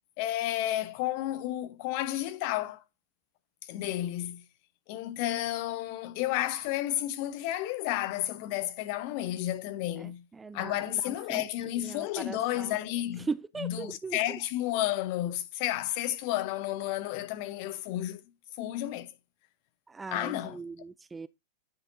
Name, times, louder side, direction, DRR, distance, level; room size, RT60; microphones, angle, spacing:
voice 1, 0.2-2.8 3.7-4.4 4.9-10.2 10.5-13.3 13.6-18.2 18.6-19.1 20.1-20.6, left 14 dB, 45° left, 0.9 m, -32 dB
voice 2, 10.0-11.4 11.7-12.8 13.2-14.2 19.9-21.3, right 4 dB, 10° right, 0.4 m, -39 dB
9.8 x 4.4 x 3.9 m
figure-of-eight pair, 95°, 0 cm